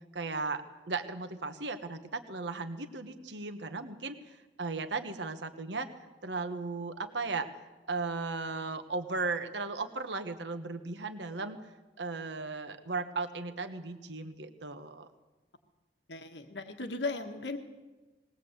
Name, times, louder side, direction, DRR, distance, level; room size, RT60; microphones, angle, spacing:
voice 1, 0.1-5.9 6.2-7.5 7.9-11.6 12.0-15.1, right 3 dB, 85° right, 8 dB, 1.3 m, -36 dB
voice 2, 16.1-17.6, left 3 dB, 85° left, 5 dB, 1.5 m, -36 dB
21.0 x 18.5 x 8.0 m, 1.2 s
head